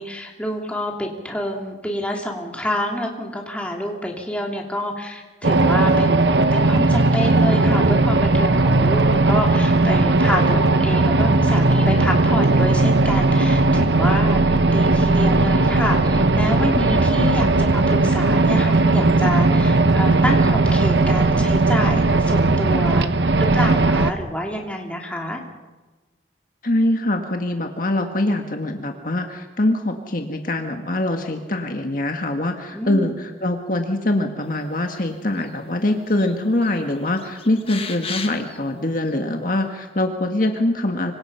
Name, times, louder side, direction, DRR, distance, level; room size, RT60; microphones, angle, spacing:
voice 1, 0.0-25.4 32.7-33.3, left 1 dB, 5° left, 0 dB, 3.1 m, -28 dB
sound 1, 5.4-24.1, right 2 dB, 65° right, 1.0 m, -17 dB
voice 2, 26.6-41.1, left 1 dB, 45° left, 4 dB, 1.7 m, -23 dB
sound 2, 35.0-35.6 35.9-36.3 36.6-38.6 39.1-39.2, left 6 dB, 30° left, 1.7 m, -34 dB
26.0 x 25.0 x 5.7 m, 1.2 s
head